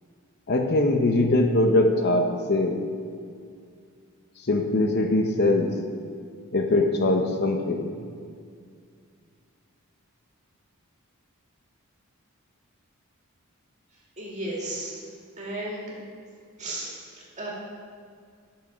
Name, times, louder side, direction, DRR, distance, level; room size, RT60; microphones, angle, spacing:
voice 1, 0.5-2.8 4.5-5.7 6.5-7.9, left 2 dB, 45° left, 4 dB, 0.7 m, -22 dB
voice 2, 14.2-15.0 15.4-15.9 16.6-17.5, right 1 dB, 30° right, -4 dB, 2.2 m, -34 dB
8.7 x 6.5 x 5.5 m, 2.2 s
head